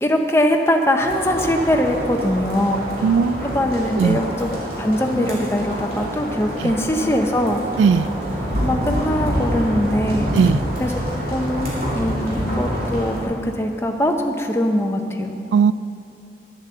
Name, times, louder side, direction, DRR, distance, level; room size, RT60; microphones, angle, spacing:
voice 1, 0.0-2.9 3.5-4.5 4.8-7.6 8.6-10.3 10.8-10.9 11.3-15.4, left 1 dB, 15° left, 3 dB, 0.8 m, -21 dB
sound 1, 1.0-13.2, equal, 55° right, 3.0 m, -26 dB
voice 2, 3.0-3.4 4.0-4.2 6.6-6.7 7.8-8.1 10.3-10.6 15.5-15.7, right 6 dB, 85° right, 16 dB, 0.3 m, -17 dB
11.5 x 8.0 x 6.8 m, 2.6 s
head